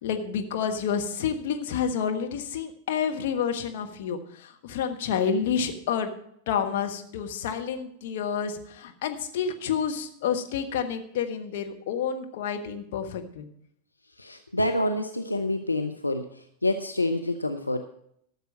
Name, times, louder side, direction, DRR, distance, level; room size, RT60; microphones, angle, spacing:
voice 1, 0.0-6.1 6.5-13.5, left 7 dB, 55° left, 5 dB, 1.3 m, -29 dB
voice 2, 14.2-17.8, left 1 dB, 85° left, 6 dB, 0.6 m, -27 dB
13.0 x 6.8 x 6.3 m, 0.69 s
figure-of-eight pair, 90°, 0 cm